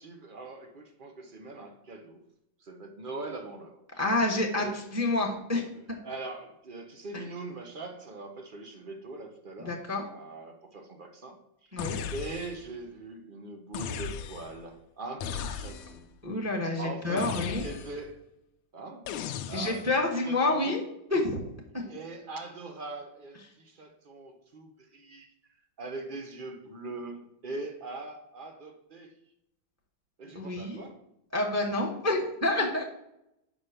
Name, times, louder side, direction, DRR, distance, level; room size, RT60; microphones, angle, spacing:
voice 1, 0.0-2.2 2.6-3.8 4.6-4.7 6.0-9.7 10.1-11.8 12.1-16.0 16.8-17.3 17.6-18.2 18.7-19.1 19.5-19.8 20.2-20.8 21.8-25.3 25.8-29.1 30.2-31.0, right 3 dB, 60° right, 4 dB, 0.5 m, -41 dB
voice 2, 4.0-5.7 7.1-7.2 9.6-10.0 11.7-12.0 16.2-17.7 19.5-20.8 21.1-21.4 21.7-21.8 30.3-30.8 31.3-32.8, left 2 dB, 10° right, 1 dB, 1.0 m, -28 dB
sound 1, 11.8-12.7 13.7-14.6 15.2-16.1 17.2-18.1 19.1-20.0, left 7 dB, 85° left, 1.5 m, -37 dB
5.7 x 5.2 x 6.5 m, 0.81 s
omnidirectional pair, 2.3 m